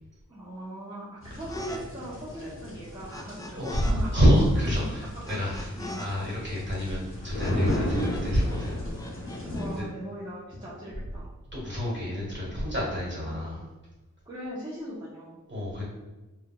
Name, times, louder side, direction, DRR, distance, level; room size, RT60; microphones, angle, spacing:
voice 1, 0.3-4.2 5.5-6.0 9.5-11.3 13.3-13.4 14.2-15.4, right 1 dB, 15° right, -10 dB, 0.8 m, -39 dB
sound 1, 1.2-9.8, left 1 dB, 45° left, 0.8 m, -34 dB
sound 2, 1.5-3.9 4.2-8.2 8.5-9.7, left 2 dB, 10° left, 0.3 m, -42 dB
voice 2, 3.5-5.5 6.0-8.8 9.3-9.5 9.8-9.9 11.5-13.6 15.5-15.8, equal, 35° right, -5 dB, 1.4 m, -27 dB
3.6 x 2.3 x 2.2 m, 1.1 s
wide cardioid pair, 50°, 31 cm